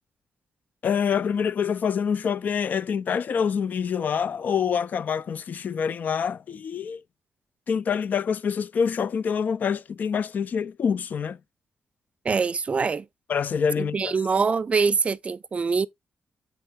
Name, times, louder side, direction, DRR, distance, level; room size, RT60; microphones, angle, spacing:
voice 1, 0.8-7.0 7.7-11.4 13.3-14.2, left 7 dB, 60° left, 0.4 m, -26 dB
voice 2, 12.2-13.0 13.8-15.9, right 5 dB, 40° right, 0.4 m, -24 dB
7.8 x 4.5 x 3.2 m
cardioid pair, 90°, 3 cm